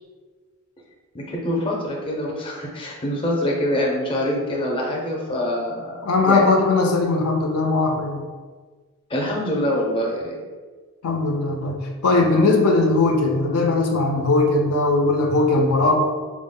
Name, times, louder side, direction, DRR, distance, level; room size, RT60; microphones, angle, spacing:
voice 1, 1.1-6.4 9.1-10.4, left 1 dB, 25° left, -2 dB, 0.5 m, -25 dB
voice 2, 6.0-8.2 11.0-16.0, left 3 dB, 75° left, 1 dB, 0.5 m, -19 dB
4.4 x 2.1 x 3.6 m, 1.5 s
head